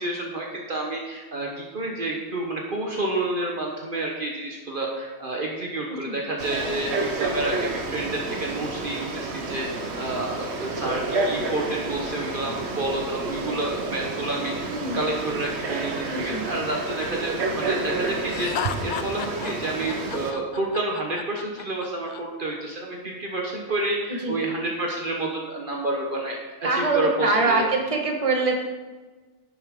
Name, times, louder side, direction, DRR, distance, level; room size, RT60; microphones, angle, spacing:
voice 1, 0.0-9.7 9.9-26.4 26.7-27.7, right 2 dB, 50° right, -1 dB, 1.3 m, -29 dB
Frog, 6.4-20.3, right 3 dB, 75° right, 1.3 m, -30 dB
voice 2, 14.7-15.0 16.1-16.4 24.1-24.4 26.6-28.6, right 3 dB, 30° right, 1 dB, 1.5 m, -24 dB
Laughter, 18.3-22.2, left 8 dB, 60° left, 0.6 m, -33 dB
11.0 x 9.3 x 3.7 m, 1.3 s
omnidirectional pair, 1.1 m